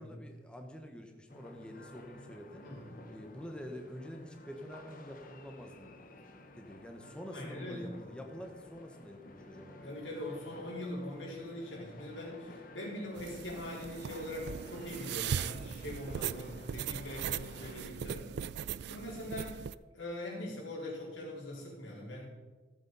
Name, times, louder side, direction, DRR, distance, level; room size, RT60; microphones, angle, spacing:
voice 1, 0.0-2.7 3.1-5.9 6.5-10.0, equal, 5° left, 3 dB, 0.9 m, -47 dB
sound 1, 1.3-17.8, left 1 dB, 45° left, 1.1 m, -53 dB
voice 2, 7.3-7.9 9.8-18.3 18.9-19.6 19.9-22.3, left 1 dB, 90° left, -4 dB, 4.2 m, -42 dB
sound 2, 13.2-19.7, right 8 dB, 60° right, 0.3 m, -39 dB
14.5 x 6.8 x 5.4 m, 1.3 s
head